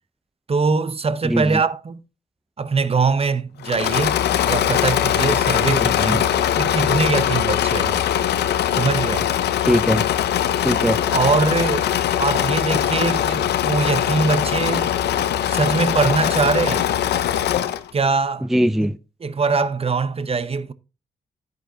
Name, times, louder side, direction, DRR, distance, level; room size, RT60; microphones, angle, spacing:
voice 1, 0.5-2.0 2.6-4.2 4.5-6.3 6.6-8.0 8.7-9.3 11.1-11.9 12.2-14.9 15.5-16.9 17.9-18.5 19.2-20.7, right 4 dB, 35° right, 0.8 m, -22 dB
voice 2, 1.2-1.6 5.7-6.2 9.6-10.0 10.6-11.0 18.4-19.0, equal, ahead, 0.4 m, -21 dB
Engine / Mechanisms, 3.6-17.9, left 10 dB, 85° left, 0.7 m, -21 dB
11.0 x 8.4 x 2.8 m
cardioid pair, 60°, 17 cm